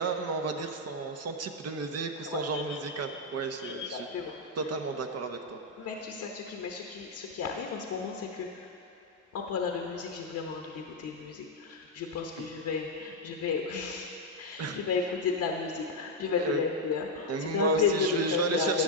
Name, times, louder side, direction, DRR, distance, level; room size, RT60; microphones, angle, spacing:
voice 1, 0.0-4.1 4.6-5.6 12.4-12.5 14.6-14.8 16.4-16.6 17.3-18.8, right 3 dB, 55° right, 5 dB, 0.9 m, -32 dB
sound 1, 2.5-5.5 6.5-6.6, left 8 dB, 40° left, 0.8 m, -45 dB
voice 2, 3.7-4.7 5.8-8.7 9.3-14.1 14.4-18.8, left 6 dB, 70° left, 1 dB, 1.0 m, -33 dB
14.0 x 9.5 x 3.8 m, 3.0 s
cardioid pair, 90°, 30 cm